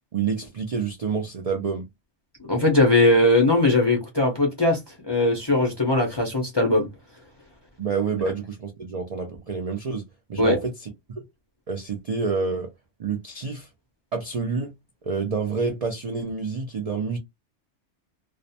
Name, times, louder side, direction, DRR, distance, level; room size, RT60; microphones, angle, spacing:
voice 1, 0.1-1.9 7.8-10.0 10.3-10.9 11.7-12.7 13.0-13.7 14.1-14.7 15.0-17.2, right 5 dB, 70° right, 0.3 m, -28 dB
voice 2, 2.5-4.8 5.1-6.9 10.4-10.6, left 2 dB, 35° left, 0.4 m, -19 dB
2.5 x 2.1 x 2.7 m
omnidirectional pair, 1.4 m